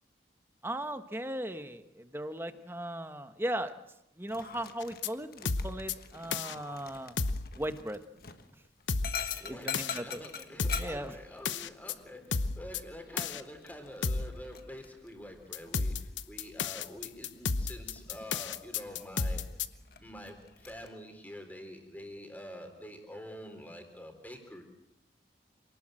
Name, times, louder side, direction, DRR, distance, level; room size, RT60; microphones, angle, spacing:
voice 1, 0.6-3.7 4.2-7.2 7.6-8.0 9.5-10.2 10.8-11.2, right 1 dB, 10° right, 10 dB, 1.1 m, -37 dB
Dog, 4.2-20.9, left 7 dB, 55° left, 1.5 m, -46 dB
sound 1, 4.8-5.1 5.5-5.9 6.3-6.5 7.2-7.5 8.9-9.4 9.7-10.0 10.6-10.9 11.5-11.9 12.3-12.8 13.2-13.4 14.0-14.3 15.5-19.7, left 4 dB, 90° left, 1.0 m, -32 dB
voice 2, 9.4-19.5 20.0-24.6, equal, 10° left, 4 dB, 3.9 m, -47 dB
27.5 x 19.0 x 7.7 m, 0.82 s
head